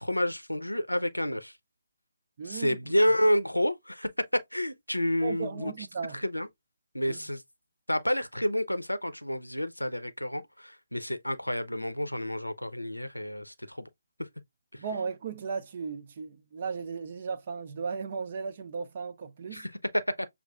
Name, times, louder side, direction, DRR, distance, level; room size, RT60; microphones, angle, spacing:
voice 1, 0.0-1.5 2.4-5.9 6.1-6.5 6.9-7.4 7.9-13.9 14.2-14.3 14.7-14.8 19.5-20.3, equal, 90° left, 0.6 m, -29 dB
voice 2, 2.4-2.8 5.2-6.2 7.1-7.2 14.8-19.7, right 5 dB, 40° right, 0.4 m, -36 dB
6.5 x 2.4 x 2.3 m
figure-of-eight pair, 145°, 0 cm